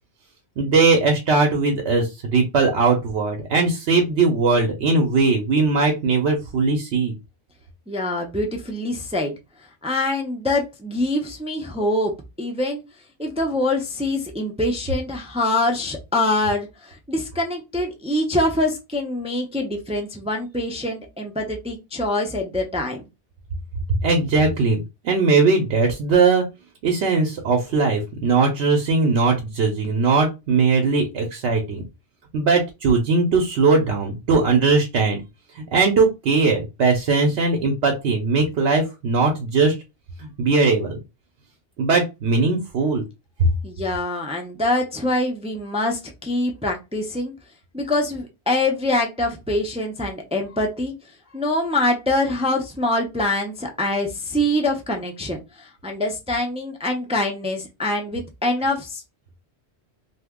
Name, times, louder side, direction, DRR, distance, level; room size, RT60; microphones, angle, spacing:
voice 1, 0.6-7.1 23.9-26.4 26.8-31.8 32.3-35.2 35.6-39.8 40.2-41.0 41.8-43.0, right 4 dB, 85° right, 1 dB, 1.0 m, -19 dB
voice 2, 7.9-12.1 12.4-12.8 13.2-23.0 43.6-47.3 47.7-50.9 51.3-59.0, left 1 dB, 10° right, 2 dB, 0.3 m, -24 dB
2.7 x 2.3 x 3.5 m, 0.25 s
omnidirectional pair, 1.1 m